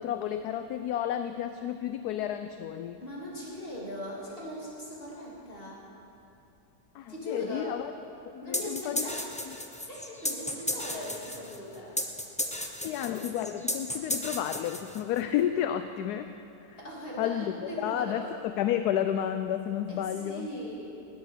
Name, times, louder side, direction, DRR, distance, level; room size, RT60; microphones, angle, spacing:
voice 1, 0.0-3.0 6.9-7.9 8.3-9.1 9.5-9.6 12.8-16.3 16.7-16.8 17.2-20.5, left 10 dB, 70° left, 9 dB, 1.0 m, -31 dB
voice 2, 3.0-5.8 7.1-7.7 8.4-9.4 9.9-12.0 16.8-18.3 19.9-20.9, equal, 30° left, -5 dB, 3.2 m, -40 dB
sound 1, 8.5-15.2, left 1 dB, 10° left, 0.3 m, -34 dB
19.0 x 9.6 x 6.7 m, 2.9 s
omnidirectional pair, 1.9 m